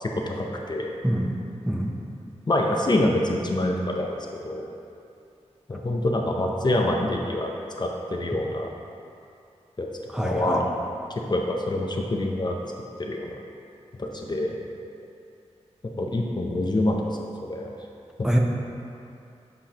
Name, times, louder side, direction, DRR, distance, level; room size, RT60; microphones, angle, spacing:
voice 1, 0.0-1.0 2.5-4.2 4.4-4.7 5.7-7.5 7.8-8.7 9.8-9.9 10.2-10.7 11.3-12.6 13.0-13.3 14.0-14.6 16.0-17.7 18.2-18.3, left 1 dB, 40° left, 1 dB, 0.6 m, -26 dB
voice 2, 1.0-1.4 1.7-2.0 10.1-10.6 18.2-18.4, right 1 dB, 5° right, -1 dB, 0.6 m, -24 dB
7.8 x 5.2 x 2.9 m, 2.5 s
wide cardioid pair, 75°, 12 cm